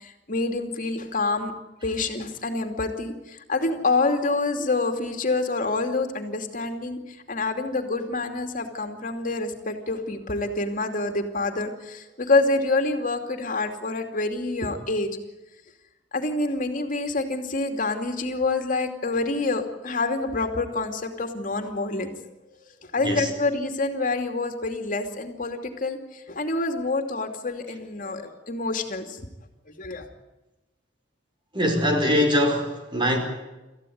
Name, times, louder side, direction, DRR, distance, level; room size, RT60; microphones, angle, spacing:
voice 1, 0.0-1.5 1.8-15.1 16.1-22.1 22.9-29.2 29.8-30.1, left 3 dB, 45° left, 5 dB, 2.7 m, -27 dB
voice 2, 31.5-33.2, equal, 25° right, 4 dB, 4.9 m, -22 dB
27.0 x 15.0 x 9.5 m, 1.0 s
head